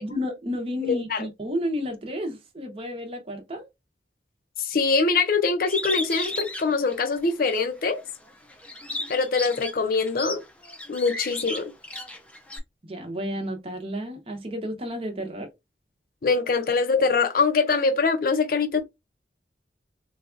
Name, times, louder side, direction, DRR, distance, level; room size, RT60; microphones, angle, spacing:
voice 1, 0.0-3.7 12.8-15.5, equal, 30° right, 0.7 m, -31 dB
voice 2, 4.6-8.0 9.1-10.4 10.9-11.6 16.2-18.8, left 4 dB, 55° left, 0.5 m, -23 dB
Bird, 5.7-7.6 8.1-12.6, left 2 dB, 5° left, 0.5 m, -34 dB
3.9 x 2.3 x 2.5 m
head